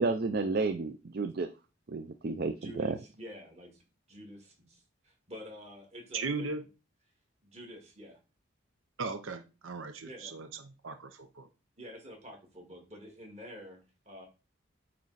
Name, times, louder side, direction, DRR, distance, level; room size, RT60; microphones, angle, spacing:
voice 1, 0.0-1.5 1.9-2.9, right 3 dB, 50° right, 8 dB, 0.5 m, -31 dB
voice 2, 2.6-3.7 4.1-6.5 7.4-8.2 10.0-10.3 11.8-14.3, equal, 35° right, 1 dB, 1.9 m, -48 dB
voice 3, 6.1-6.6 9.0-11.5, right 4 dB, 85° right, 8 dB, 0.7 m, -37 dB
8.6 x 3.2 x 4.0 m, 0.31 s
head